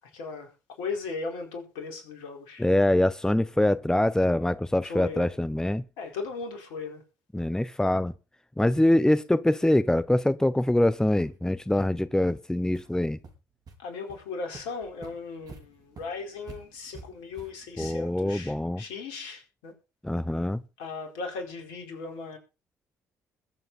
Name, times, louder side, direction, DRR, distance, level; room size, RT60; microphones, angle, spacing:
voice 1, 0.1-2.7 4.8-5.3 6.0-7.0 13.8-19.7 20.8-22.4, left 4 dB, 75° left, 4.6 m, -37 dB
voice 2, 2.6-5.8 7.3-8.1 8.6-13.2 17.8-18.8 20.0-20.6, left 1 dB, 5° left, 0.9 m, -24 dB
sound 1, 10.2-10.3 10.7-10.8 11.2-11.3 11.7-11.9 12.3-12.4 12.7-12.9 13.2-13.7 14.1-14.2 14.5-18.2, right 4 dB, 50° right, 4.8 m, -48 dB
21.5 x 8.0 x 4.2 m
hypercardioid pair, 45°, 9 cm